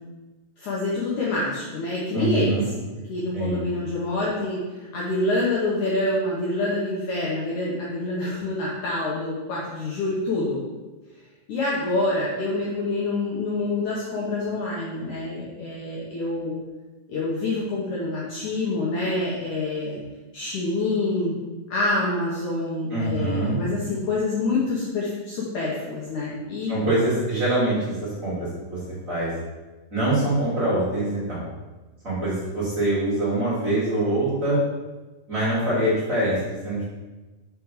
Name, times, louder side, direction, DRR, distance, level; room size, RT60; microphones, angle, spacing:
voice 1, 0.6-2.6 3.1-10.6 11.5-16.6 17.1-20.0 20.3-21.3 21.7-26.8, left 2 dB, 75° left, -5 dB, 1.8 m, -26 dB
voice 2, 2.1-2.7 3.3-3.6 22.9-23.6 26.7-28.8 29.1-29.3 29.9-31.4 32.0-34.6 35.3-36.8, right 1 dB, 40° right, -9 dB, 1.1 m, -24 dB
5.9 x 4.7 x 5.1 m, 1.2 s
omnidirectional pair, 5.0 m